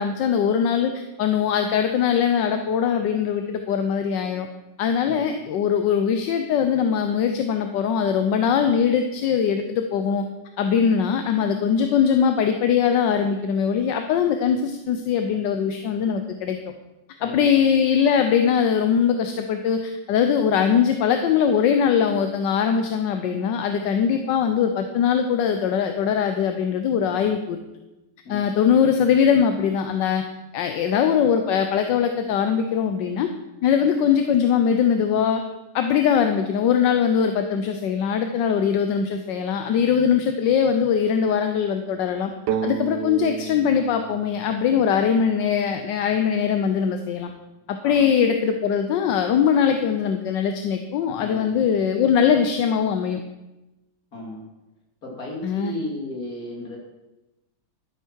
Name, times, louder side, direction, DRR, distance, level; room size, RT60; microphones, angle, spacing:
voice 1, 0.0-4.5 4.8-10.2 10.6-16.6 17.2-27.6 28.3-30.2 30.5-33.3 33.6-35.4 35.7-42.3 42.6-47.3 47.7-53.2 55.4-55.7, left 7 dB, 80° left, 6 dB, 1.4 m, -21 dB
sound 1, 42.5-46.1, right 9 dB, 70° right, 1.2 m, -32 dB
voice 2, 51.2-51.6 54.1-54.4 55.0-56.8, left 1 dB, 55° left, -1 dB, 3.1 m, -34 dB
12.0 x 10.0 x 4.6 m, 1.0 s
omnidirectional pair, 1.9 m